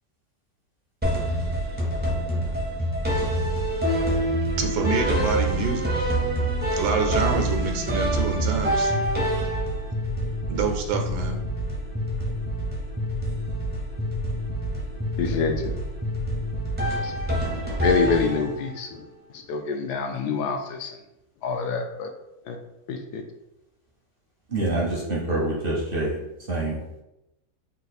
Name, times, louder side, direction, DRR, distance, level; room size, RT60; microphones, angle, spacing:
sound 1, 1.0-18.8, right 1 dB, 15° right, 0.4 m, -26 dB
voice 1, 4.6-5.9 6.7-8.9 10.5-11.4, right 5 dB, 80° right, 3 dB, 1.3 m, -27 dB
voice 2, 15.2-15.5 17.0-17.1 17.8-18.9 19.5-20.9 21.4-22.1 22.5-22.6 22.9-23.2, left 5 dB, 75° left, 5 dB, 1.1 m, -26 dB
voice 3, 24.5-26.2 26.5-26.7, right 2 dB, 50° right, -4 dB, 0.7 m, -26 dB
4.0 x 2.4 x 4.1 m, 0.89 s
omnidirectional pair, 1.8 m